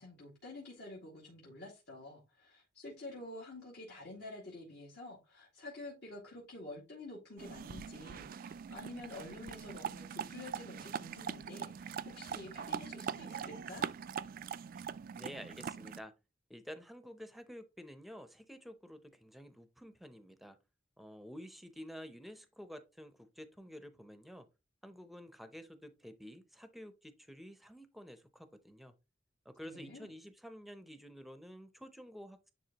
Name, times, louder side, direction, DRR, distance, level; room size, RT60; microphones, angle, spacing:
voice 1, 0.0-13.9 29.6-30.1, left 2 dB, 65° left, 2.1 m, -49 dB
sound 1, 7.4-16.0, right 7 dB, 50° right, 0.3 m, -42 dB
voice 2, 15.2-16.1 16.5-20.6 21.0-24.5 24.8-28.9 29.5-32.5, equal, ahead, 0.7 m, -50 dB
10.0 x 3.4 x 2.9 m
head